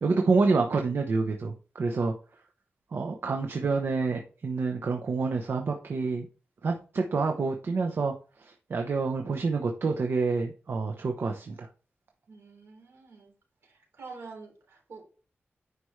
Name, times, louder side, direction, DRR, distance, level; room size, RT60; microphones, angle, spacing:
voice 1, 0.0-2.1 2.9-6.3 6.6-11.7, right 4 dB, 60° right, 0.9 m, -28 dB
voice 2, 12.3-13.3 13.6-15.0, right 4 dB, 80° right, 3.7 m, -47 dB
9.7 x 5.2 x 3.2 m
wide cardioid pair, 140°, 4 cm